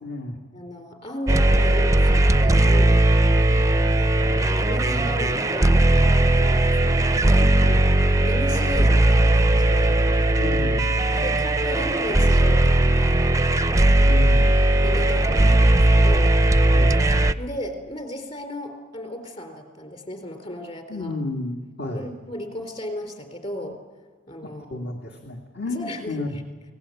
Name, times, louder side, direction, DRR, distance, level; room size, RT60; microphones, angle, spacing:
voice 1, 0.0-0.4 4.4-4.5 7.3-7.9 10.4-10.9 14.0-14.7 16.7-17.0 20.9-22.1 24.4-26.4, left 2 dB, 50° left, 3 dB, 2.1 m, -32 dB
voice 2, 0.5-3.0 4.0-7.0 8.2-10.0 11.1-13.3 13.7-14.3 14.8-16.4 17.4-21.1 21.9-23.8 24.3-24.9 25.7-26.4, equal, 30° left, 6 dB, 3.8 m, -35 dB
sound 1, 1.3-17.3, right 1 dB, 15° right, 0.7 m, -18 dB
28.0 x 19.5 x 8.5 m, 1.4 s
head